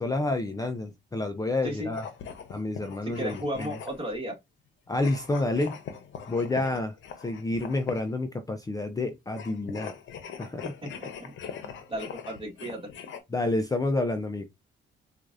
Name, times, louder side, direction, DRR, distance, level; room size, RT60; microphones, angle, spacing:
voice 1, 0.0-2.0 2.5-3.7 4.9-5.8 6.3-6.9 7.2-9.9 10.4-10.6 13.3-14.5, left 2 dB, 20° left, 0.5 m, -29 dB
sound 1, 1.9-4.2 4.9-8.2 9.3-13.2, left 7 dB, 75° left, 0.8 m, -42 dB
voice 2, 3.0-4.3 10.4-11.3 11.6-12.8, equal, 25° right, 1.7 m, -35 dB
4.5 x 2.5 x 2.6 m
cardioid pair, 90°, 20 cm